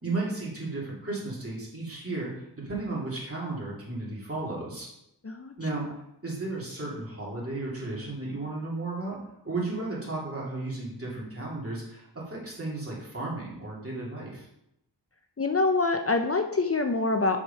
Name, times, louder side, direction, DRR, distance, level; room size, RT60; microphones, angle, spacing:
voice 1, 0.0-4.9 5.6-5.9 6.2-9.2 9.4-14.5, right 2 dB, 30° right, -5 dB, 3.0 m, -34 dB
voice 2, 15.4-17.4, left 3 dB, 35° left, 6 dB, 0.6 m, -25 dB
6.6 x 5.0 x 5.5 m, 0.80 s
wide cardioid pair, 60°, 43 cm